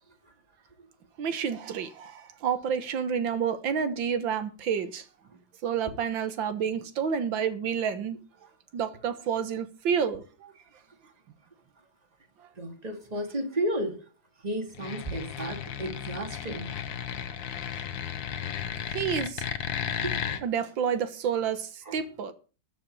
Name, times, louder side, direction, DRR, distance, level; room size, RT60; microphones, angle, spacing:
voice 1, 1.2-5.1 5.6-8.2 8.7-10.5 17.6-17.7 18.9-19.5 20.4-22.3, right 7 dB, 90° right, 2.0 m, -29 dB
voice 2, 12.6-14.0 14.4-16.8 20.0-20.1 21.9-22.0, right 1 dB, 20° right, 2.3 m, -33 dB
sound 1, 14.7-20.4, left 9 dB, 90° left, 1.8 m, -34 dB
13.0 x 6.0 x 8.6 m
omnidirectional pair, 2.0 m